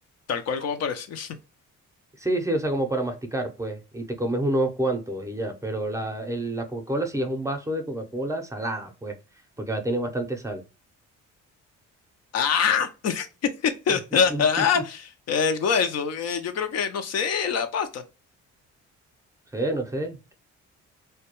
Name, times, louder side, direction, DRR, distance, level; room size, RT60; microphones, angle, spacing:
voice 1, 0.3-1.4 12.3-13.3 13.6-18.0, left 6 dB, 55° left, 0.5 m, -25 dB
voice 2, 2.2-9.1 9.6-10.6 14.3-14.4 14.7-14.8 19.5-20.3, right 1 dB, 10° right, 0.6 m, -28 dB
2.2 x 2.1 x 2.9 m
cardioid pair, 90°, 30 cm